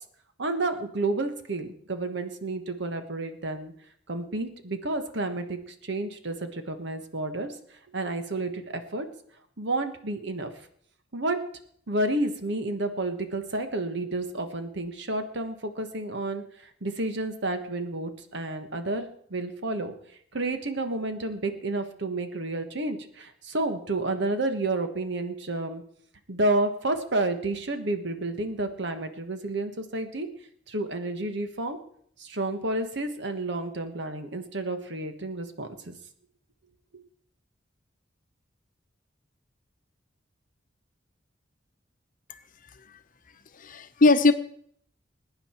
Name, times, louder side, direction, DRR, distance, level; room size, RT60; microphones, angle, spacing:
voice 1, 0.4-3.7 4.1-7.5 7.9-9.1 9.6-10.5 11.1-11.4 11.9-19.9 20.3-25.8 26.3-30.3 30.7-31.8 32.2-36.0, right 2 dB, 65° right, 8 dB, 1.4 m, -30 dB
voice 2, 43.6-44.3, left 3 dB, 45° left, 9 dB, 0.9 m, -20 dB
21.0 x 9.6 x 4.5 m, 0.65 s
head